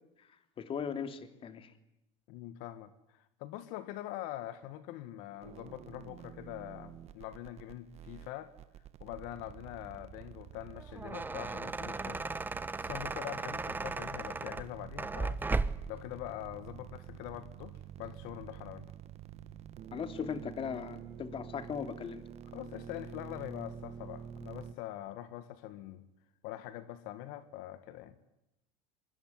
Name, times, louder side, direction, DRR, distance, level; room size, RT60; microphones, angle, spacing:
voice 1, 0.6-1.7 19.9-22.3, left 7 dB, 40° left, 10 dB, 3.1 m, -38 dB
voice 2, 2.3-8.5 9.0-12.3 12.8-15.4 15.9-18.9 22.5-26.1 26.4-28.2, left 14 dB, 70° left, 12 dB, 1.9 m, -44 dB
sound 1, 5.4-24.7, right 9 dB, 45° right, 1.8 m, -49 dB
sound 2, 10.8-16.0, right 3 dB, 15° right, 1.3 m, -36 dB
24.5 x 23.5 x 9.6 m, 0.88 s
supercardioid pair, 105°, 14 cm